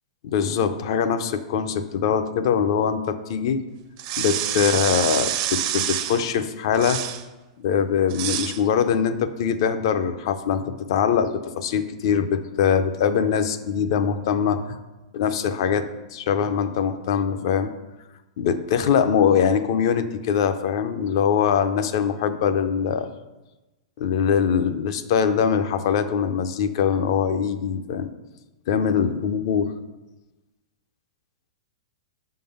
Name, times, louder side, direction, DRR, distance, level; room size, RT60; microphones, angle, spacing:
voice 1, 0.2-3.6 4.2-7.0 7.6-14.8 15.1-15.9 16.1-17.7 18.4-23.1 24.0-28.1 28.7-29.7, left 7 dB, 55° left, 10 dB, 0.5 m, -22 dB
sound 1, 4.0-6.2 6.7-7.2 8.1-8.6, right 11 dB, 35° right, 0.5 m, -27 dB
6.9 x 3.8 x 5.4 m, 1.1 s
hypercardioid pair, 155°, 3 cm